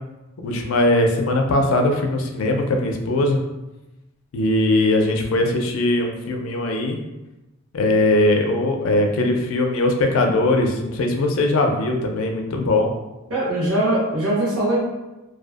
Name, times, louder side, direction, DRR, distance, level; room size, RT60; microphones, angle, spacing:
voice 1, 0.4-3.4 4.3-7.0 7.7-12.9, left 2 dB, 70° left, 3 dB, 0.4 m, -20 dB
voice 2, 13.3-14.8, right 1 dB, 90° right, -9 dB, 0.8 m, -21 dB
2.5 x 2.2 x 2.3 m, 1.0 s
head